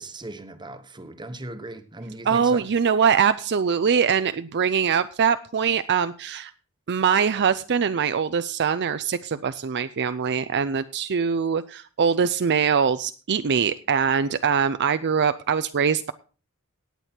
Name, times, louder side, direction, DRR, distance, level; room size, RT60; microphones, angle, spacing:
voice 1, 0.0-2.7, right 2 dB, 20° right, 1.2 m, -38 dB
voice 2, 2.2-6.5 6.9-16.1, right 6 dB, 50° right, 0.5 m, -23 dB
17.5 x 8.4 x 4.4 m
head